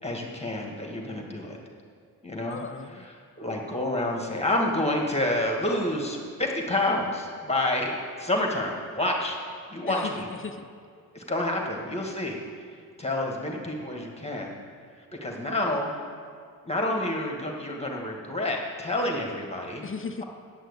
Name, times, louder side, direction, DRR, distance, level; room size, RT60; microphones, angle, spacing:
voice 1, 0.0-1.6 2.2-2.6 2.9-7.9 8.2-9.4 9.7-10.3 11.1-12.4 13.0-14.6 15.2-15.9 16.6-19.8, left 1 dB, 15° left, 0 dB, 1.9 m, -28 dB
voice 2, 2.5-3.1 9.9-10.7 19.8-20.2, left 5 dB, 35° left, 9 dB, 0.6 m, -37 dB
9.1 x 6.4 x 8.2 m, 2.1 s
cardioid pair, 65°, 38 cm